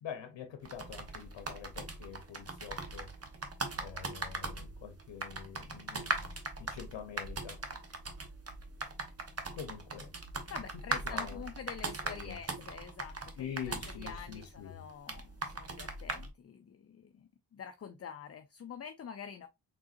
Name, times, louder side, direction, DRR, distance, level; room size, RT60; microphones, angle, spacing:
voice 1, 0.0-3.1 3.8-6.3 6.6-7.6 9.5-10.1 10.7-11.5 12.0-12.6 13.4-14.9, left 8 dB, 80° left, 0.8 m, -45 dB
sound 1, 0.6-16.3, right 3 dB, 35° right, 1.0 m, -40 dB
voice 2, 10.5-13.4 14.0-19.5, left 7 dB, 35° left, 0.5 m, -47 dB
3.8 x 3.7 x 2.4 m
supercardioid pair, 45°, 43 cm